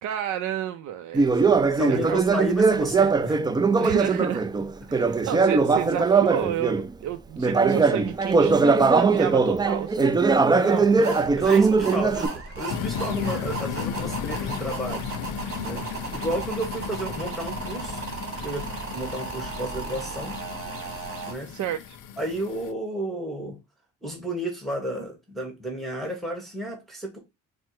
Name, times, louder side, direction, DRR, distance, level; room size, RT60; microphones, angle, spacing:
voice 1, 0.0-1.5 1.9-2.2 3.8-4.5 4.9-10.2 21.5-22.0, right 10 dB, 75° right, 0.5 m, -31 dB
Conversation, 1.1-6.9 7.4-12.3, right 4 dB, 15° right, 0.3 m, -20 dB
voice 2, 1.7-3.4 10.4-15.1 15.6-18.0 18.4-20.4 21.3-21.5 22.2-23.6 24.0-27.2, right 1 dB, ahead, 1.2 m, -32 dB
sound 1, 11.0-21.3, right 4 dB, 45° right, 1.7 m, -35 dB
sound 2, 12.7-22.7, left 8 dB, 80° left, 0.6 m, -35 dB
4.3 x 2.0 x 4.5 m
cardioid pair, 90°, 30 cm